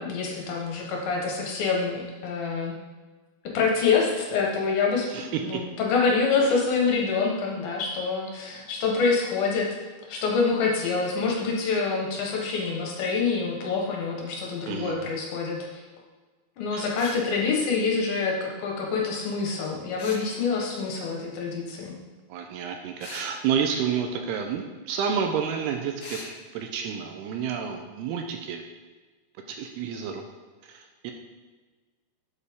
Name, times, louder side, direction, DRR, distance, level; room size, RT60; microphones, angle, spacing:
voice 1, 0.0-2.7 3.5-9.7 10.1-15.8 16.6-21.9, left 4 dB, 70° left, -1 dB, 2.6 m, -26 dB
voice 2, 5.1-5.6 14.7-14.9 16.7-16.9 22.3-26.2 26.5-28.6 29.5-30.2 30.6-31.1, right 7 dB, 80° right, 4 dB, 2.5 m, -30 dB
sound 1, 17.0-17.2 20.0-20.3 23.0-23.3 26.0-26.3, left 2 dB, 55° left, 2.8 m, -39 dB
8.0 x 7.5 x 3.5 m, 1.3 s
omnidirectional pair, 4.9 m